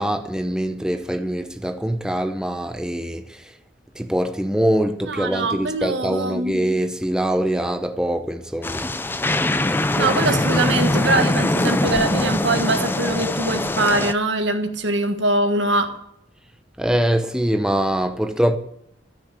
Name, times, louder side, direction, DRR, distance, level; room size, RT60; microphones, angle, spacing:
voice 1, 0.0-3.2 4.0-8.9 16.8-18.6, right 1 dB, 5° right, 0.8 m, -23 dB
voice 2, 5.0-6.6 10.0-15.9, right 2 dB, 75° right, 1.5 m, -22 dB
sound 1, 8.6-14.1, left 1 dB, 10° left, 0.4 m, -22 dB
14.0 x 6.4 x 8.4 m
head